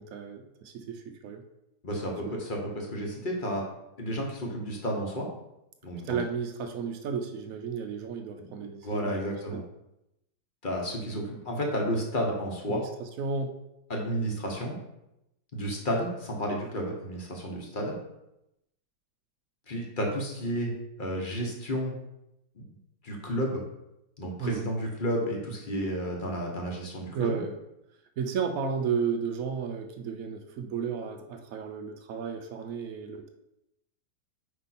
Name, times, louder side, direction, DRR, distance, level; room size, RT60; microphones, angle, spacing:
voice 1, 0.0-1.4 2.2-2.4 6.0-9.6 12.7-13.6 24.4-24.7 27.1-27.6 28.2-33.3, right 6 dB, 70° right, 6 dB, 0.8 m, -33 dB
voice 2, 1.8-3.7 4.0-5.3 5.8-6.2 8.3-8.5 8.8-9.6 10.6-12.8 13.9-14.7 15.5-17.9 19.7-20.7 21.0-22.0 22.5-22.7 23.0-23.6 24.2-27.4, equal, 35° left, 0 dB, 0.9 m, -31 dB
5.2 x 5.2 x 4.2 m, 0.88 s
omnidirectional pair, 2.1 m